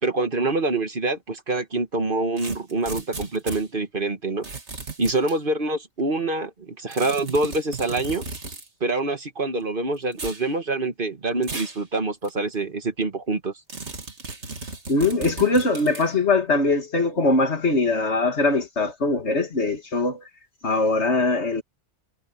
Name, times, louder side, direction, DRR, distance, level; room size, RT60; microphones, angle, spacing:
voice 1, 0.0-4.4 5.0-8.2 8.8-13.5, right 2 dB, 45° right, 1.7 m, -25 dB
sound 1, 2.4-3.6 4.4-5.4 6.9-8.7 10.1-10.4 11.4-11.8 12.2-12.3 13.7-16.1, right 3 dB, 70° right, 2.8 m, -35 dB
voice 2, 14.9-20.2 20.6-21.6, left 3 dB, 70° left, 2.5 m, -21 dB
omnidirectional pair, 1.2 m